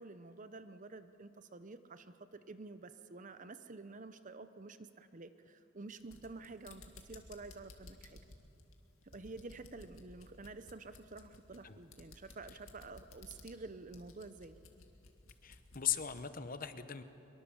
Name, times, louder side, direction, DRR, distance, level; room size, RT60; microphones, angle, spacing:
voice 1, 0.0-8.2 9.0-14.6, right 3 dB, 35° right, 12 dB, 0.7 m, -50 dB
sound 1, 5.9-16.3, left 2 dB, 85° left, 2.2 m, -57 dB
voice 2, 15.4-17.0, left 10 dB, 40° left, 11 dB, 0.9 m, -38 dB
24.0 x 23.0 x 7.2 m, 2.9 s
head